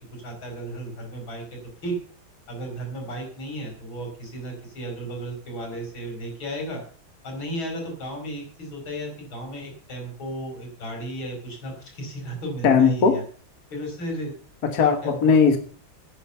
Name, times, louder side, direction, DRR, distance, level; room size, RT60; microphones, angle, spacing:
voice 1, 0.2-1.4 1.8-2.0 2.5-6.8 7.2-13.2 13.7-14.3 14.8-15.2, right 1 dB, 85° left, 2 dB, 5.6 m, -34 dB
voice 2, 12.6-13.2 14.6-15.6, left 6 dB, 55° left, 6 dB, 1.8 m, -18 dB
10.5 x 9.9 x 6.8 m, 0.43 s
omnidirectional pair, 2.1 m